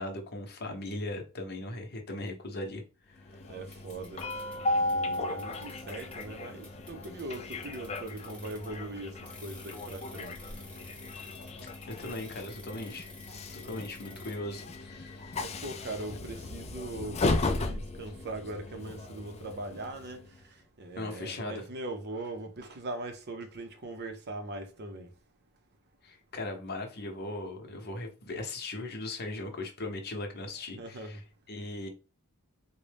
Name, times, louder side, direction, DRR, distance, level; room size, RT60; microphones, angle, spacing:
voice 1, 0.0-3.5 11.5-13.1 13.5-15.4 21.0-21.7 26.0-31.2 31.5-31.9, left 2 dB, 50° left, 0.8 m, -39 dB
Train, 3.2-20.4, left 2 dB, 30° left, 0.4 m, -36 dB
voice 2, 3.5-4.2 4.7-10.4 15.4-20.3 20.8-25.1 30.8-31.2, right 2 dB, 50° right, 0.6 m, -40 dB
sound 1, 3.7-4.6 4.9-6.3 6.6-8.8 9.2-14.4, left 2 dB, 5° left, 0.9 m, -52 dB
sound 2, 4.2-10.0, equal, 85° left, 0.6 m, -51 dB
3.9 x 2.2 x 3.3 m
head